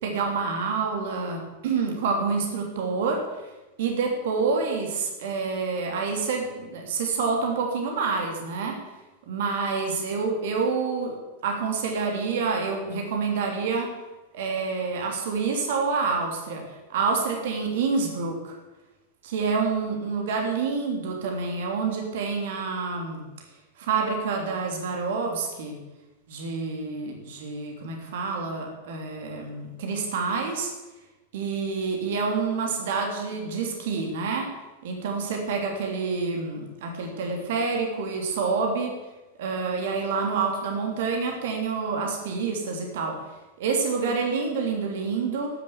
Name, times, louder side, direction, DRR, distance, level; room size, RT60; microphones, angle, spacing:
voice 1, 0.0-3.2 3.8-8.8 9.3-11.2 11.4-13.9 14.3-18.6 19.2-23.2 23.8-25.8 26.3-30.7 31.3-34.5 34.8-38.9 39.4-43.1 43.6-45.5, right 4 dB, 55° right, 2 dB, 3.2 m, -27 dB
13.0 x 10.5 x 7.3 m, 1.1 s
figure-of-eight pair, 90°, 0 cm